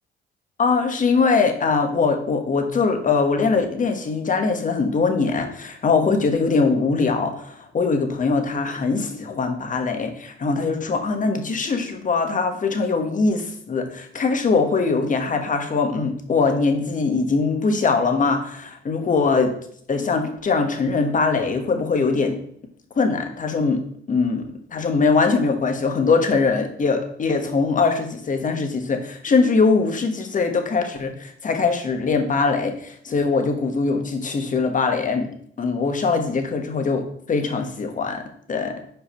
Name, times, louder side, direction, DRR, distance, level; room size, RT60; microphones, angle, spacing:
voice 1, 0.6-19.5 19.9-22.4 22.9-23.8 24.1-24.4 24.7-35.3 35.6-38.2 38.5-38.8, left 4 dB, 40° left, 5 dB, 1.4 m, -22 dB
5.7 x 4.9 x 5.7 m, 0.63 s
cardioid pair, 90°, 20 cm